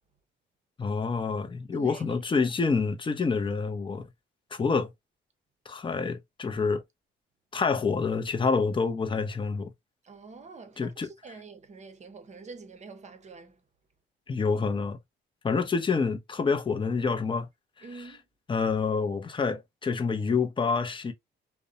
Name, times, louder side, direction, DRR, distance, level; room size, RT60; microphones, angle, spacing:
voice 1, 0.8-4.1 4.5-4.9 5.7-6.8 7.5-9.7 10.8-11.1 14.3-15.0 15.4-17.5 17.8-18.1 18.5-21.1, left 5 dB, 25° left, 0.5 m, -27 dB
voice 2, 1.7-2.0 10.0-13.6 17.8-18.2, right 4 dB, 35° right, 0.6 m, -46 dB
2.5 x 2.1 x 2.6 m
cardioid pair, 90°, 20 cm